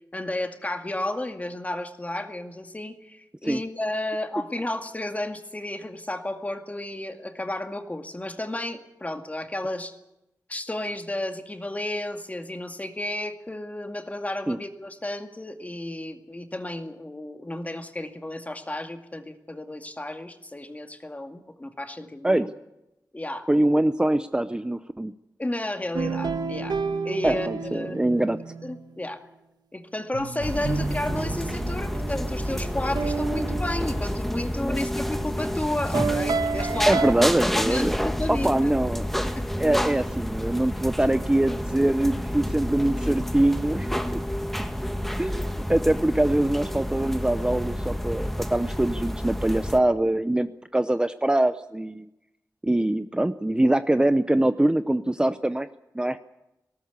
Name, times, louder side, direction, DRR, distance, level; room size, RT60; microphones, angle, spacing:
voice 1, 0.0-9.9 10.5-22.5 23.1-23.5 25.4-26.8 27.0-28.1 28.6-29.2 29.7-37.0 37.5-38.5 39.4-39.5, left 1 dB, 20° left, 6 dB, 2.3 m, -32 dB
voice 2, 23.5-25.1 27.2-28.5 34.7-34.8 36.9-39.0 39.6-44.2 45.2-52.1 52.6-55.7 55.9-56.2, right 1 dB, 15° right, 11 dB, 0.7 m, -23 dB
sound 1, 25.9-28.8 30.1-34.7 35.9-37.1, right 4 dB, 85° right, 1.3 m, -30 dB
sound 2, 30.4-49.8, equal, 5° left, 1.4 m, -29 dB
19.0 x 18.0 x 8.2 m, 0.90 s
wide cardioid pair, 100°, 7 cm